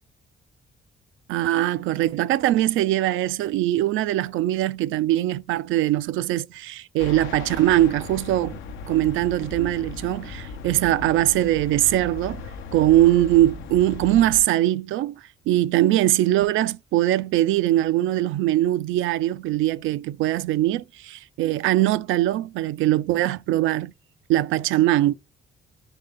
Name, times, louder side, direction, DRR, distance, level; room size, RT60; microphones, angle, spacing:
voice 1, 1.3-8.5 8.9-12.4 12.7-15.2 15.5-23.9 24.3-25.1, right 14 dB, 85° right, 0.4 m, -21 dB
sound 1, 7.0-14.4, left 4 dB, 90° left, 0.7 m, -37 dB
3.9 x 3.3 x 3.5 m
cardioid pair, 90°, 20 cm